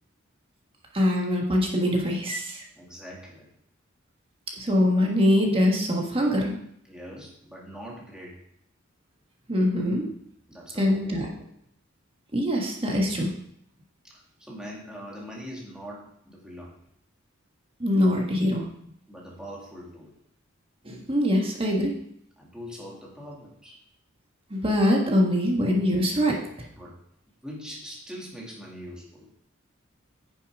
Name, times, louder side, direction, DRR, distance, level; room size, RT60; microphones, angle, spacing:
voice 1, 0.9-2.6 4.6-6.6 9.5-10.1 10.8-11.3 12.3-13.3 17.8-18.6 20.8-21.9 24.5-26.4, left 1 dB, 25° right, -1 dB, 1.5 m, -23 dB
voice 2, 2.8-3.5 6.9-8.4 10.5-11.5 14.0-16.7 19.1-20.1 22.4-23.8 26.8-27.0 27.4-29.3, equal, 5° right, -4 dB, 2.3 m, -42 dB
10.0 x 7.0 x 3.6 m, 0.73 s
head